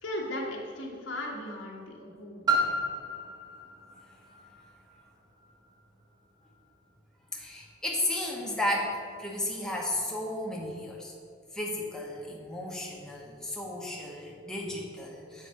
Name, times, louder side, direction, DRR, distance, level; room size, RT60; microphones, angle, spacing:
voice 1, 0.0-2.5, left 1 dB, 70° left, -2 dB, 1.3 m, -37 dB
Piano, 2.5-7.9 8.6-8.7, right 1 dB, 20° right, 1.1 m, -34 dB
voice 2, 7.3-8.9 9.2-11.1 11.5-15.5, left 1 dB, 5° left, -3 dB, 0.9 m, -34 dB
7.4 x 4.1 x 5.5 m, 2.2 s
head